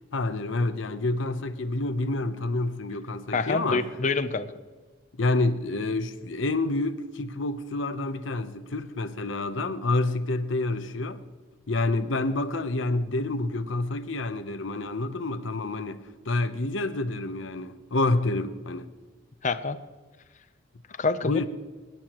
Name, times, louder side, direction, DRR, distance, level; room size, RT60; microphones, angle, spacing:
voice 1, 0.1-3.9 5.2-11.2 11.7-18.9 21.2-21.5, left 2 dB, 75° left, 0.8 m, -28 dB
voice 2, 3.3-4.5 19.4-19.8 21.0-21.5, left 3 dB, 40° left, 0.6 m, -26 dB
25.5 x 10.5 x 3.0 m
head